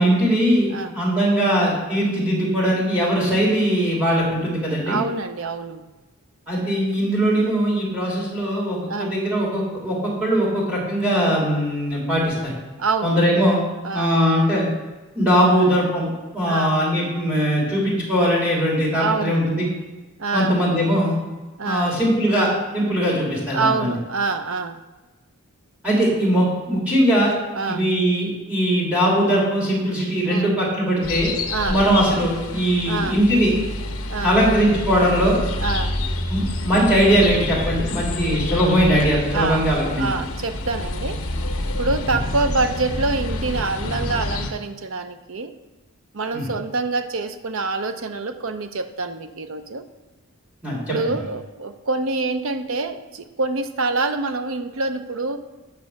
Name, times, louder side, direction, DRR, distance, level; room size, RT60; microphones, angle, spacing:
voice 1, 0.0-5.0 6.5-12.6 13.0-13.6 13.9-14.7 15.1-16.1 16.3-19.7 20.3-21.2 21.6-23.9 25.8-27.3 27.7-31.3 31.7-33.5 34.2-35.3 36.3-40.0 42.1-42.2 46.3-46.5 50.6-51.1, equal, 5° right, -7 dB, 3.1 m, -20 dB
voice 2, 4.9-5.8 8.8-9.1 12.8-13.2 13.8-14.1 15.6-15.7 16.5-16.8 18.9-19.5 20.2-20.6 21.6-22.0 23.5-24.8 27.1-27.3 27.6-27.8 30.3-30.5 31.5-31.8 32.9-33.2 34.1-34.4 35.6-35.9 39.3-39.7 40.0-41.2 41.8-45.5 46.1-49.8 50.9-55.4, right 3 dB, 60° right, 9 dB, 0.6 m, -26 dB
sound 1, 31.0-44.5, left 1 dB, 70° left, 1.1 m, -28 dB
8.3 x 5.7 x 6.4 m, 1.2 s
head